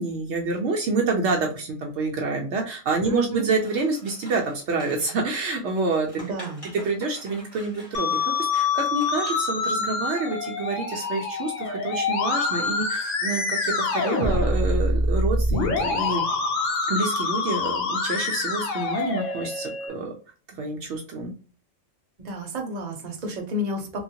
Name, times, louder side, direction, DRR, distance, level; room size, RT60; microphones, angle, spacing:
voice 1, 0.0-6.1 6.8-16.2 16.9-20.1 20.5-21.3, right 3 dB, 70° right, 1 dB, 0.9 m, -27 dB
voice 2, 3.0-3.5 6.2-6.7 22.2-24.0, equal, 40° right, 2 dB, 0.8 m, -31 dB
Scissors, 3.5-9.6, right 1 dB, 25° left, 1.5 m, -47 dB
Musical instrument, 7.9-19.9, left 3 dB, 80° left, 1.0 m, -26 dB
3.0 x 2.1 x 2.7 m, 0.37 s
omnidirectional pair, 1.3 m